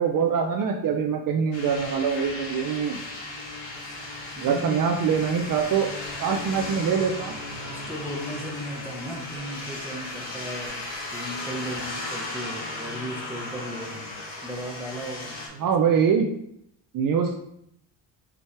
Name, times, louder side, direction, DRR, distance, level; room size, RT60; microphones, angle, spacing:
voice 1, 0.0-3.0 4.4-5.9 6.2-7.3 15.6-16.3 16.9-17.4, right 6 dB, 50° right, 3 dB, 0.6 m, -24 dB
sound 1, 1.5-15.5, left 2 dB, 90° left, 2.4 m, -36 dB
voice 2, 4.4-5.2 7.7-10.8 11.1-14.1 14.4-15.7, equal, 5° right, -1 dB, 1.1 m, -36 dB
6.0 x 4.7 x 3.3 m, 0.74 s
cardioid pair, 145°, 45 cm